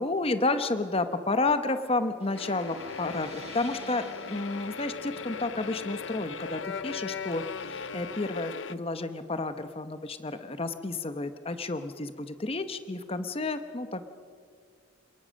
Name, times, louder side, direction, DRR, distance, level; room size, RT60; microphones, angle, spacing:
voice 1, 0.0-14.1, left 2 dB, 30° left, 10 dB, 0.9 m, -31 dB
sound 1, 2.2-8.2, right 2 dB, 35° right, 2.1 m, -49 dB
sound 2, 2.3-8.7, left 5 dB, 70° left, 0.7 m, -38 dB
28.0 x 19.0 x 6.4 m, 2.1 s
head